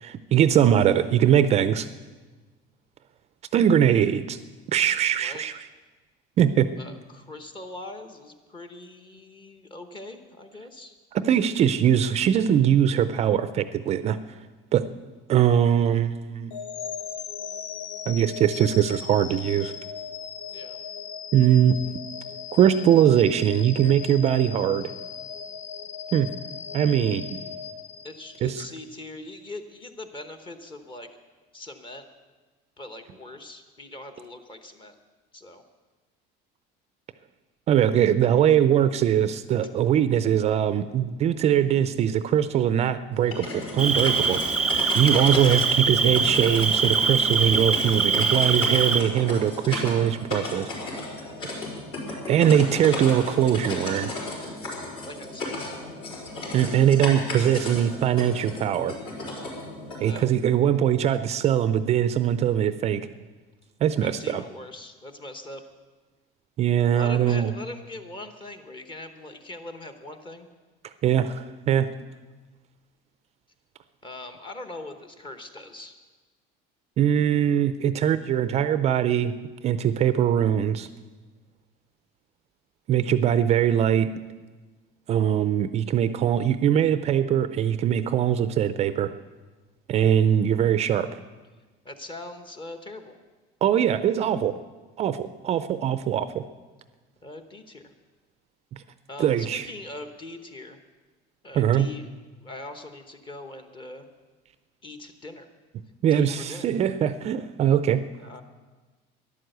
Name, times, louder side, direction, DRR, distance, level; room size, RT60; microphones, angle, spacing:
voice 1, 0.0-1.9 3.5-4.4 4.7-5.6 6.4-6.7 11.1-14.2 14.7-14.9 15.3-16.6 18.1-19.7 21.3-21.9 22.5-24.9 26.1-26.3 26.7-27.4 28.4-28.6 37.7-50.7 52.3-54.1 56.5-58.9 60.0-63.0 63.8-64.4 66.6-67.5 71.0-71.9 77.0-79.3 79.6-80.9 82.9-84.1 85.1-89.1 89.9-91.2 93.6-94.5 95.0-96.4 98.7-98.8 99.2-99.7 101.6-101.9 106.0-108.0, right 9 dB, 35° right, 12 dB, 0.4 m, -22 dB
voice 2, 6.8-10.9 20.5-20.8 28.0-31.1 31.5-32.1 32.8-35.0 35.3-35.6 52.3-52.5 55.0-55.7 60.0-60.3 64.0-65.6 66.9-70.5 74.0-75.9 91.8-93.1 97.2-97.9 99.1-100.8 101.4-102.1 102.4-104.1 104.8-105.5 106.1-106.7 108.2-108.4, left 2 dB, 25° left, 7 dB, 1.0 m, -41 dB
sound 1, 16.5-28.6, left 7 dB, 85° left, 1.0 m, -38 dB
sound 2, 43.1-60.1, left 2 dB, 65° left, 5.0 m, -34 dB
Cricket, 43.8-49.0, right 5 dB, 5° right, 0.7 m, -23 dB
12.5 x 11.0 x 7.9 m, 1.3 s
cardioid pair, 160°, 20 cm